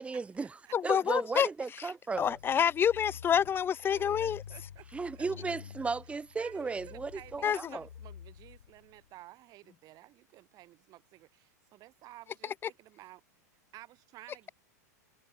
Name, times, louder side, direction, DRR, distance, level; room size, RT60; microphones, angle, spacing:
voice 1, 0.0-2.4 4.9-7.9, right 4 dB, 15° right, 1.9 m, -35 dB
voice 2, 0.7-1.5 2.2-4.4 7.4-7.8, left 8 dB, 25° left, 0.8 m, -27 dB
sound 1, 2.1-9.0, left 8 dB, 85° left, 2.6 m, -49 dB
voice 3, 3.9-4.8 5.1-5.5 6.4-13.2 13.7-14.5, right 17 dB, 40° right, 5.2 m, -53 dB
hypercardioid pair, 105°, 9 cm